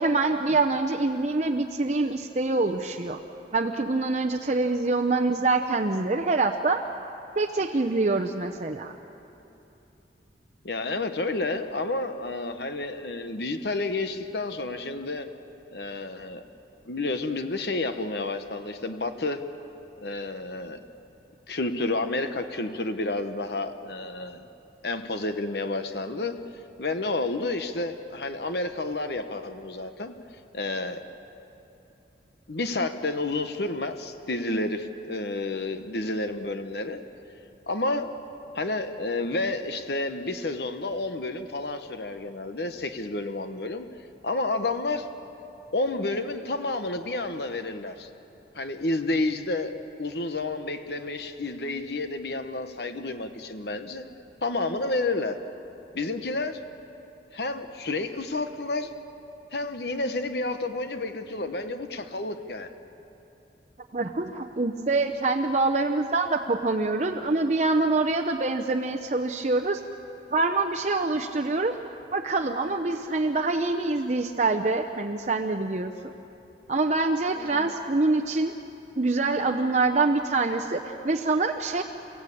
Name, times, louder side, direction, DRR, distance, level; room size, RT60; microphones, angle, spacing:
voice 1, 0.0-3.2 3.5-6.8 7.4-8.9 63.9-69.8 70.3-71.8 72.1-75.9 76.7-78.5 79.0-81.8, right 3 dB, 40° right, 4 dB, 0.8 m, -25 dB
voice 2, 10.6-15.3 15.7-16.4 16.9-19.4 20.0-20.8 21.5-24.4 24.8-26.3 26.8-30.2 30.5-31.0 32.5-37.0 37.7-38.1 38.5-43.9 44.2-45.1 45.7-48.1 48.5-49.7 50.0-54.1 54.4-55.4 55.9-56.6 57.3-58.9 59.5-62.7 77.3-77.7, left 2 dB, 60° left, 8 dB, 1.1 m, -30 dB
30.0 x 16.5 x 8.6 m, 2.9 s
head